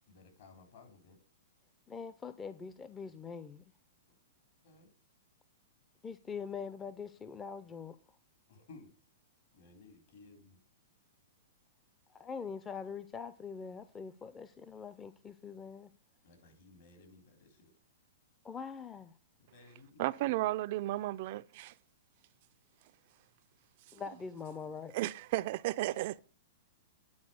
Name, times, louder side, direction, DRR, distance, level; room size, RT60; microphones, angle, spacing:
voice 1, 0.1-1.2 4.6-4.9 8.5-8.9 9.5-10.6 16.2-17.7 19.5-20.3, left 3 dB, 65° left, 3.7 m, -57 dB
voice 2, 1.9-3.6 6.0-8.0 12.1-15.9 18.4-19.1 23.9-25.0, left 6 dB, 20° left, 0.5 m, -43 dB
voice 3, 20.0-21.7 24.9-26.2, right 16 dB, 50° right, 0.3 m, -33 dB
9.6 x 4.6 x 6.6 m
hypercardioid pair, 130°, 0 cm